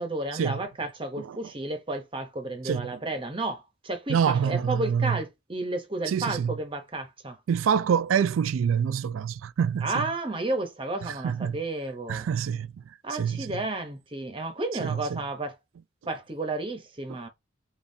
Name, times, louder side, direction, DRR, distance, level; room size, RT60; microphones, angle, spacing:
voice 1, 0.0-7.4 9.8-12.3 13.0-15.6 16.1-17.3, right 2 dB, 25° right, 0.7 m, -32 dB
voice 2, 2.6-3.0 4.1-5.2 6.1-6.5 7.5-9.9 11.0-11.6 12.1-12.7 13.1-13.5 14.8-15.2, right 7 dB, 80° right, 0.3 m, -26 dB
7.0 x 2.4 x 2.6 m
head